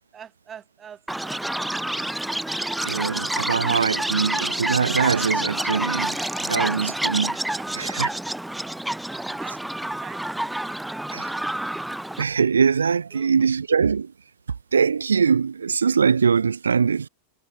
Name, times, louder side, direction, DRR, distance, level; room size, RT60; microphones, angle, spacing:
voice 1, 0.1-2.2 3.8-4.2 7.5-8.0 9.0-10.5 10.8-11.0 13.1-13.3, right 8 dB, 25° right, 5.2 m, -46 dB
Chirp tweet, 1.1-12.2, right 1 dB, 5° right, 0.7 m, -28 dB
voice 2, 2.8-7.4 7.8-8.1 11.1-11.3 12.2-14.1 14.7-17.1, right 6 dB, 70° right, 1.2 m, -22 dB
figure-of-eight pair, 90°, 0 cm